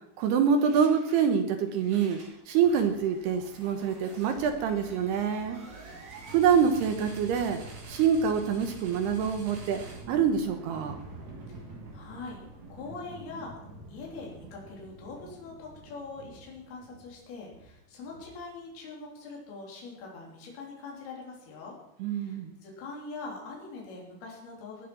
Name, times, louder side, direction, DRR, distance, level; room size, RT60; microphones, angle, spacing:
voice 1, 0.2-2.2 2.5-5.6 6.3-7.6 7.9-9.8 10.1-11.0 22.0-22.5, right 7 dB, 70° right, 7 dB, 2.7 m, -25 dB
sound 1, 0.6-1.3 1.7-18.6, right 2 dB, 40° right, 4.2 m, -47 dB
voice 2, 11.9-12.4 12.7-13.6 13.9-21.8 22.1-24.9, left 3 dB, 55° left, -2 dB, 5.3 m, -43 dB
20.0 x 9.3 x 6.2 m, 0.77 s
omnidirectional pair, 5.5 m